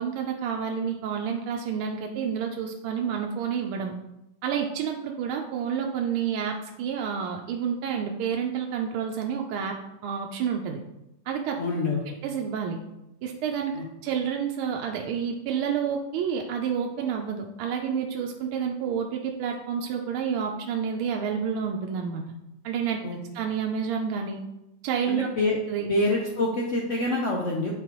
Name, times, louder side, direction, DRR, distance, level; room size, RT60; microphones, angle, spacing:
voice 1, 0.0-3.9 4.4-9.8 10.0-10.8 11.3-11.6 12.2-12.8 13.2-13.8 14.0-22.2 22.6-23.0 23.3-24.4 24.8-25.3 25.7-25.9, right 7 dB, 80° right, 2 dB, 1.4 m, -29 dB
voice 2, 11.6-12.0 13.7-13.8 23.0-23.2 25.1-25.6 25.9-27.7, left 2 dB, 85° left, -2 dB, 0.6 m, -26 dB
9.1 x 3.9 x 3.0 m, 0.91 s
omnidirectional pair, 2.3 m